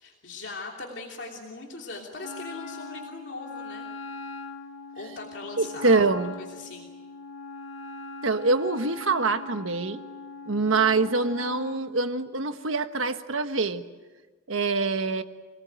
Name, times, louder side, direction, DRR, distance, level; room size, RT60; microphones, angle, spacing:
voice 1, 0.0-3.9 4.9-6.9, left 3 dB, 60° left, -1 dB, 3.0 m, -40 dB
Wind instrument woodwind instrument, 2.2-11.8, left 3 dB, 90° left, 1.9 m, -41 dB
voice 2, 5.6-6.3 8.2-10.0 10.5-13.8 14.5-15.2, right 3 dB, 90° right, 8 dB, 1.4 m, -25 dB
28.0 x 19.0 x 9.0 m, 1.3 s
head